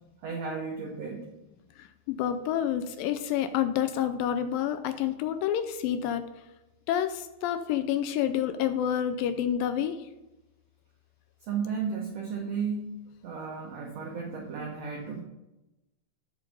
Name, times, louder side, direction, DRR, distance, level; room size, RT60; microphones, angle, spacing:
voice 1, 0.2-1.4 11.4-12.9 13.2-15.2, right 5 dB, 80° right, 1 dB, 1.5 m, -34 dB
voice 2, 1.8-6.2 6.9-10.1, left 10 dB, 80° left, 9 dB, 2.1 m, -28 dB
8.3 x 6.6 x 5.2 m, 0.99 s
omnidirectional pair, 4.4 m